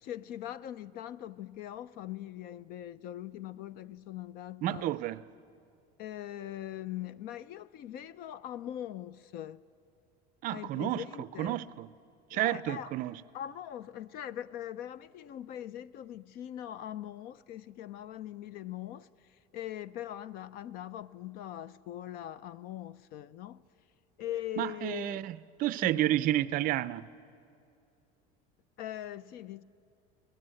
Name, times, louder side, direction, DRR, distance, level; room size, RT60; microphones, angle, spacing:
voice 1, 0.0-4.9 6.0-9.6 10.5-11.6 12.3-12.9 13.3-23.6 24.2-25.2 25.8-26.1 28.8-29.6, left 12 dB, 45° left, 0.5 m, -41 dB
voice 2, 4.6-5.2 10.4-11.0 11.4-11.9 12.3-13.2 24.6-27.1, right 14 dB, 40° right, 0.5 m, -30 dB
26.0 x 18.5 x 7.7 m
cardioid pair, 160°, 21 cm